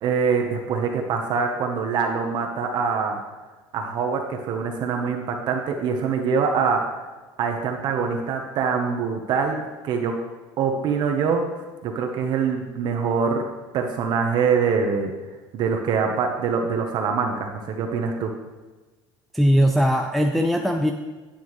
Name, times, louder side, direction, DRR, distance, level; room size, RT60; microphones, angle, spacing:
voice 1, 0.0-3.2 3.7-6.8 7.4-10.1 10.6-11.4 11.8-13.4 13.7-15.1 15.5-18.3, right 5 dB, 50° right, 3 dB, 1.0 m, -24 dB
voice 2, 19.3-20.9, equal, ahead, 2 dB, 0.5 m, -19 dB
9.7 x 8.5 x 3.2 m, 1.3 s
cardioid pair, 135°, 10 cm